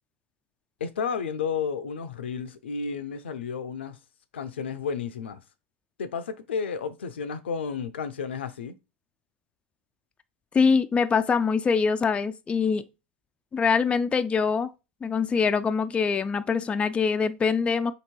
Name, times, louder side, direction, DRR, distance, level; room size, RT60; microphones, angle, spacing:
voice 1, 0.8-4.0 4.3-5.4 6.0-8.7, left 6 dB, 85° left, 0.5 m, -32 dB
voice 2, 10.5-12.8 13.5-14.7 15.0-17.9, left 5 dB, 20° left, 0.4 m, -24 dB
3.0 x 2.9 x 4.4 m
hypercardioid pair, 95°, 6 cm